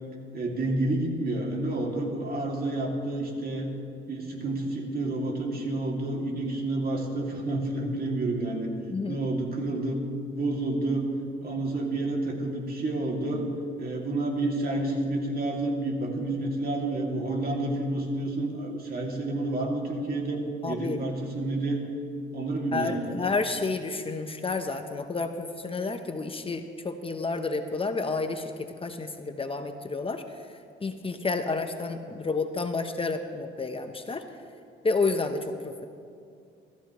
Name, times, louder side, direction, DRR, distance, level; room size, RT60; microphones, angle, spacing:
voice 1, 0.3-3.7 4.1-8.7 9.1-10.0 10.3-11.1 11.4-13.5 13.8-21.8 22.3-23.0, right 2 dB, 50° right, 0 dB, 2.5 m, -29 dB
voice 2, 20.6-21.0 22.7-30.2 30.8-34.2 34.8-35.9, left 3 dB, 30° left, 7 dB, 0.9 m, -30 dB
22.5 x 14.0 x 3.1 m, 2.4 s
cardioid pair, 90°, 20 cm